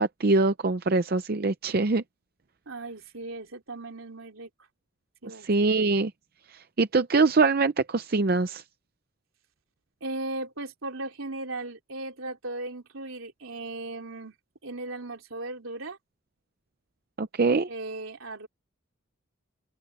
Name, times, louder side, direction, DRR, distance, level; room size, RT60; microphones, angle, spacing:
voice 1, 0.0-2.0 5.4-6.1 6.5-8.6 17.2-17.7, right 3 dB, 45° right, 0.6 m, -23 dB
voice 2, 2.7-4.5 5.2-5.7 10.0-14.4 14.6-16.0 17.7-18.5, right 2 dB, 75° right, 3.3 m, -37 dB
open air
head